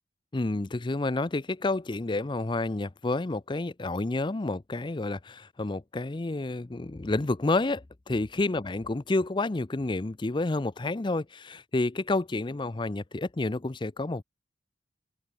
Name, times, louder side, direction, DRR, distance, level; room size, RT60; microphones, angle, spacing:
voice 1, 0.3-14.2, left 2 dB, 25° left, 0.5 m, -29 dB
open air
head